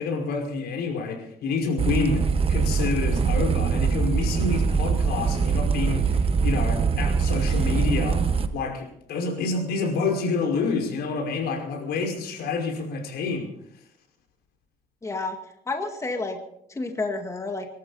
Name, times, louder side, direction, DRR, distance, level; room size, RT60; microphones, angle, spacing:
voice 1, 0.0-8.2 8.5-13.5, left 4 dB, 70° left, 2 dB, 5.3 m, -28 dB
sound 1, 1.8-8.5, right 5 dB, 35° right, 1.4 m, -23 dB
voice 2, 15.0-16.4 16.7-17.7, left 3 dB, 15° left, 4 dB, 2.2 m, -30 dB
24.0 x 13.5 x 4.2 m, 0.72 s
cardioid pair, 110°, 17 cm